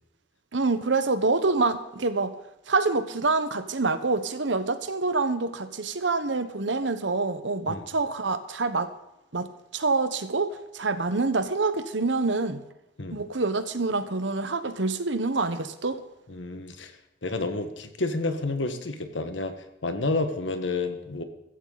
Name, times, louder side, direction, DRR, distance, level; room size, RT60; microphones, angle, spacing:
voice 1, 0.5-2.3 2.7-8.9 9.3-12.6 13.1-16.0, right 3 dB, 80° right, 11 dB, 1.2 m, -26 dB
voice 2, 16.3-16.9 17.2-19.5 19.8-21.2, left 2 dB, 90° left, 8 dB, 1.6 m, -30 dB
15.5 x 15.0 x 4.1 m, 0.91 s
head